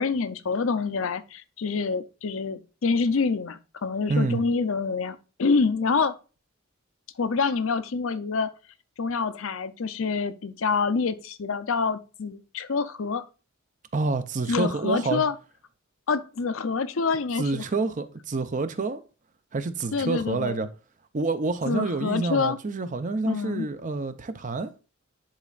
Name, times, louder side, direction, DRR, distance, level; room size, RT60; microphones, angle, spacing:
voice 1, 0.0-6.2 7.2-8.5 9.0-13.3 14.5-15.3 16.1-17.6 19.9-20.6 21.7-22.6 23.3-23.7, left 4 dB, 70° left, 0.6 m, -26 dB
voice 2, 4.1-4.4 13.9-15.2 17.4-19.0 19.5-20.7 21.1-24.7, right 3 dB, 35° right, 0.6 m, -28 dB
10.5 x 4.2 x 2.4 m
head